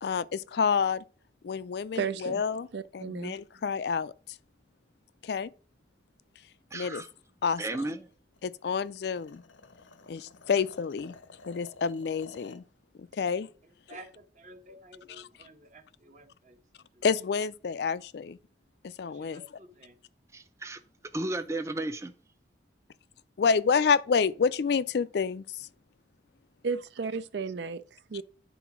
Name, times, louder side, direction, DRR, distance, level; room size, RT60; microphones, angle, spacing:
voice 1, 0.0-1.0 1.4-2.7 2.9-4.1 5.2-5.5 6.7-7.0 7.4-7.6 8.4-9.4 10.1-11.1 11.5-12.6 13.0-13.5 17.0-18.4 18.8-19.4 23.4-25.7, left 6 dB, 60° left, 0.4 m, -28 dB
voice 2, 2.0-2.4 2.7-3.4 26.6-28.2, right 5 dB, 70° right, 0.5 m, -34 dB
voice 3, 6.7-7.1 7.6-8.1 20.3-20.8 21.1-22.1, right 2 dB, 15° right, 0.5 m, -34 dB
sound 1, 8.3-12.7, left 4 dB, 90° left, 0.8 m, -52 dB
voice 4, 13.6-17.1 19.1-20.0, right 1 dB, 40° right, 1.1 m, -53 dB
9.2 x 3.9 x 5.9 m
head